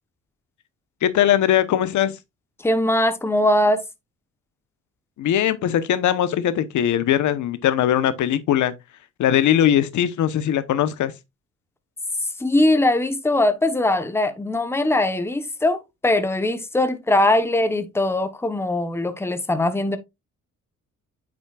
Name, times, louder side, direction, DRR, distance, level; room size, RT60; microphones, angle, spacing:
voice 1, 1.0-2.1 5.2-8.7 9.2-11.1, left 10 dB, 75° left, 1.0 m, -20 dB
voice 2, 2.6-3.8 12.4-20.0, left 1 dB, 10° left, 1.0 m, -21 dB
8.6 x 6.2 x 2.4 m
cardioid pair, 90°, 30 cm